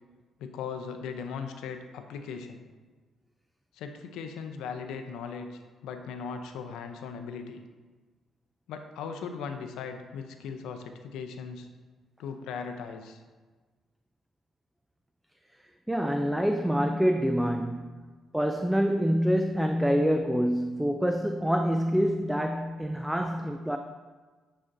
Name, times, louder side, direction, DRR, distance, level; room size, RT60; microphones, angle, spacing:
voice 1, 0.4-2.6 3.7-7.6 8.7-11.7 12.2-13.2, left 6 dB, 90° left, 6 dB, 0.5 m, -38 dB
voice 2, 15.9-18.0 18.3-23.8, equal, 5° right, 5 dB, 0.3 m, -26 dB
8.9 x 4.3 x 2.6 m, 1.3 s
cardioid pair, 90°, 0 cm